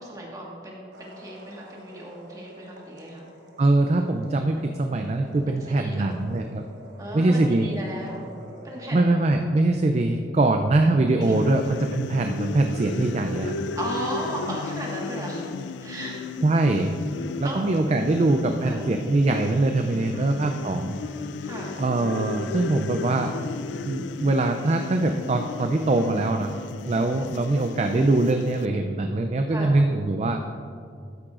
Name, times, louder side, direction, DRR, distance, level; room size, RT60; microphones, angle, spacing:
voice 1, 0.0-3.3 5.1-6.2 7.0-8.2 8.6-9.3 11.1-11.5 13.7-15.4 15.8-16.2 17.4-17.7 18.1-18.2 18.6-18.9 20.0-20.3 21.4-21.7 27.0-27.2 29.5-29.7, right 1 dB, 20° right, -3 dB, 1.5 m, -36 dB
sound 1, 0.9-9.0, right 1 dB, 70° right, 1.1 m, -47 dB
voice 2, 3.6-6.6 7.1-7.7 8.9-13.5 16.4-17.0 17.4-21.0 21.8-23.3 23.8-26.6 26.9-30.4, right 2 dB, 35° right, 5 dB, 0.3 m, -23 dB
sound 2, 11.2-28.7, left 4 dB, 75° left, 0.3 m, -35 dB
12.5 x 8.6 x 2.5 m, 2.4 s
head